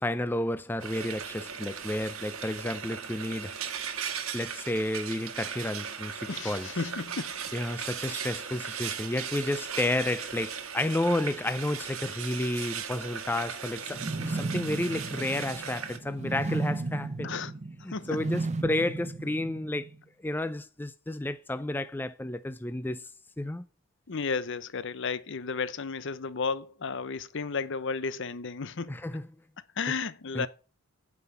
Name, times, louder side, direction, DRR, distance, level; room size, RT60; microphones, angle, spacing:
voice 1, 0.0-3.6 4.3-6.7 7.5-17.3 17.8-19.9 20.2-23.1 23.4-23.6 28.9-29.3 30.3-30.5, left 1 dB, 10° left, 0.4 m, -31 dB
Frying (food), 0.8-16.0, right 7 dB, 80° right, 1.4 m, -38 dB
voice 2, 6.3-7.6 17.2-17.5 17.9-18.1 24.1-29.0 29.8-30.5, left 5 dB, 60° left, 0.7 m, -33 dB
sound 1, 13.9-19.9, right 2 dB, 30° right, 0.7 m, -34 dB
9.3 x 5.7 x 8.2 m
head